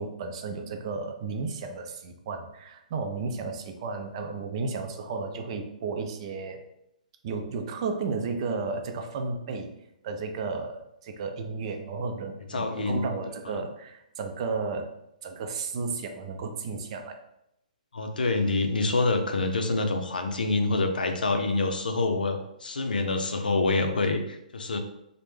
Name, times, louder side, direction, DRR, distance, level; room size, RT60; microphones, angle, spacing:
voice 1, 0.0-6.6 7.2-9.7 10.0-14.9 15.2-17.2, right 4 dB, 40° right, 4 dB, 0.5 m, -33 dB
voice 2, 12.5-13.1 17.9-24.8, left 3 dB, 85° left, 6 dB, 0.5 m, -26 dB
3.2 x 2.1 x 3.2 m, 0.82 s
hypercardioid pair, 140°, 5 cm